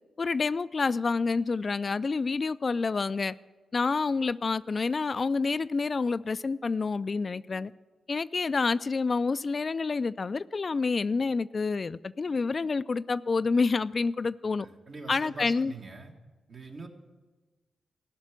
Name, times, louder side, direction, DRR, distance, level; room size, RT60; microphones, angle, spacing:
voice 1, 0.2-3.3 3.7-7.7 8.1-14.7 15.1-15.7, left 4 dB, 45° left, 15 dB, 0.3 m, -28 dB
voice 2, 14.6-16.1 16.5-16.9, right 3 dB, 55° right, 2 dB, 1.7 m, -43 dB
15.0 x 5.9 x 9.0 m, 1.3 s
cardioid pair, 60°, 0 cm